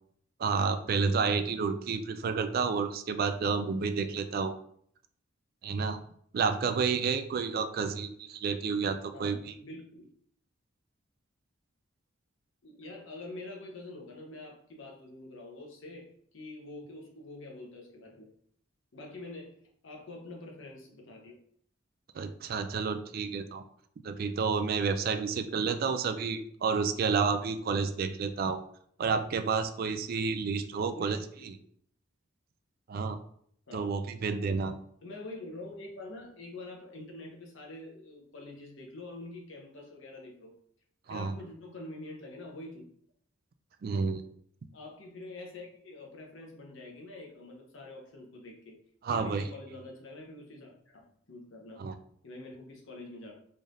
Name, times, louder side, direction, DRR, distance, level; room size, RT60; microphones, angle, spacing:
voice 1, 0.4-4.5 5.6-6.0 6.3-9.5 22.1-23.6 24.0-28.6 29.0-31.5 32.9-33.2 33.7-34.7 41.1-41.4 43.8-44.2 49.0-49.4 51.8-52.0, right 5 dB, 50° right, 10 dB, 0.3 m, -30 dB
voice 2, 9.1-10.1 12.6-18.3 18.9-19.5 19.8-21.4 30.8-31.5 33.7-33.9 35.0-40.6 41.1-42.8 44.7-48.8 49.1-51.9 52.2-53.3, left 2 dB, 70° left, 0 dB, 0.9 m, -46 dB
3.8 x 3.2 x 2.6 m, 0.65 s
head